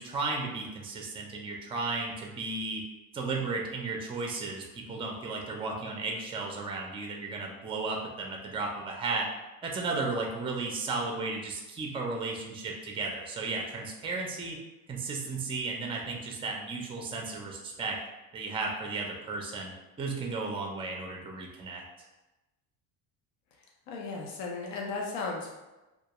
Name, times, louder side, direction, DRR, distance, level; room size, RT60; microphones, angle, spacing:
voice 1, 0.0-2.8 3.1-9.3 9.6-14.6 14.9-18.0 18.3-21.8, right 3 dB, 15° right, 1 dB, 0.4 m, -34 dB
voice 2, 23.9-25.5, left 3 dB, 85° left, -1 dB, 0.6 m, -35 dB
2.3 x 2.2 x 2.8 m, 1.0 s
cardioid pair, 105°, 38 cm